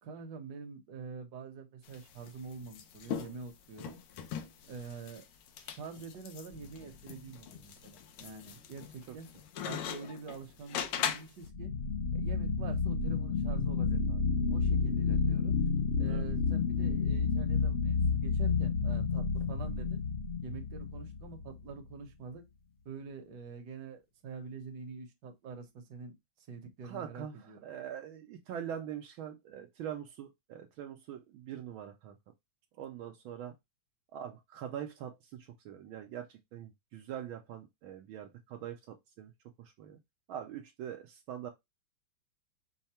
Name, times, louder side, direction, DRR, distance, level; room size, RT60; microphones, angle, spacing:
voice 1, 0.0-4.0 4.7-5.2 5.6-9.3 9.6-11.7 12.1-14.2 14.5-15.6 16.0-20.0 20.4-22.4 22.8-27.7, right 5 dB, 55° right, 1.3 m, -46 dB
sound 1, 1.8-11.5, left 8 dB, 80° left, 1.6 m, -41 dB
sound 2, 6.5-7.1 11.4-21.6, left 5 dB, 55° left, 0.8 m, -30 dB
voice 2, 26.8-32.2 32.8-33.5 34.1-39.3 39.6-40.0 40.3-41.5, right 9 dB, 75° right, 1.4 m, -43 dB
5.5 x 2.2 x 4.2 m
omnidirectional pair, 2.4 m